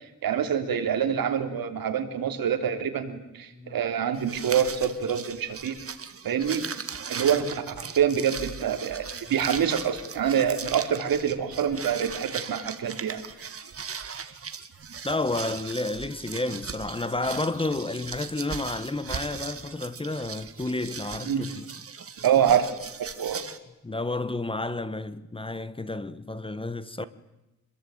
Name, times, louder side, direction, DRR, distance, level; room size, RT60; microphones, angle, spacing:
voice 1, 0.2-5.8 6.2-6.6 7.1-13.5 21.3-21.4 22.2-22.7 23.0-23.4, right 8 dB, 80° right, 3.4 m, -26 dB
sound 1, 4.1-23.6, right 6 dB, 40° right, 1.9 m, -38 dB
voice 2, 15.0-21.6 23.8-27.0, left 2 dB, 15° left, 1.1 m, -31 dB
26.5 x 22.0 x 9.2 m
cardioid pair, 120°, 35 cm